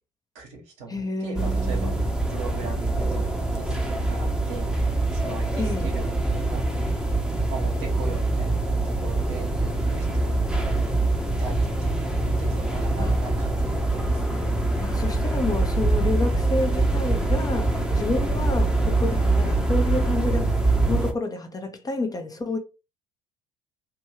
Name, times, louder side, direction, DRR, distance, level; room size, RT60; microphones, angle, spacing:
voice 1, 0.3-1.9 2.3-6.9 7.5-9.5 9.8-10.7 11.4-14.2, right 4 dB, 70° right, 1.4 m, -39 dB
voice 2, 0.9-1.9 5.6-5.9 13.0-13.1 14.8-20.5 20.9-22.6, left 2 dB, 20° left, 0.8 m, -29 dB
sound 1, 1.3-21.1, right 2 dB, 5° right, 1.0 m, -24 dB
3.4 x 2.6 x 3.1 m
figure-of-eight pair, 60°, 18 cm